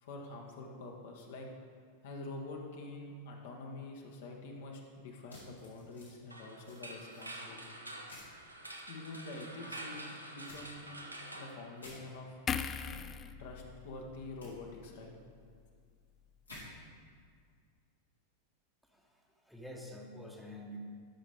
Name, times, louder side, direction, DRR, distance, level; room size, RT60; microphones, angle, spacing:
voice 1, 0.0-1.5 2.0-7.8 8.9-10.9 11.3-12.4 13.4-15.1, left 2 dB, 55° left, 1 dB, 1.2 m, -46 dB
sound 1, 5.3-6.1 6.6-7.3 8.1-8.3 10.4-10.6 11.8-12.0 14.4-14.5 16.4-16.6, left 2 dB, 80° left, 2.4 m, -52 dB
sound 2, 6.3-12.3, right 1 dB, 85° right, 0.8 m, -47 dB
sound 3, 12.5-15.8 16.2-16.4, left 6 dB, 25° left, 0.3 m, -41 dB
voice 2, 18.9-20.8, equal, ahead, 0 dB, 1.0 m, -48 dB
13.0 x 6.1 x 3.5 m, 2.1 s
figure-of-eight pair, 90°, 0 cm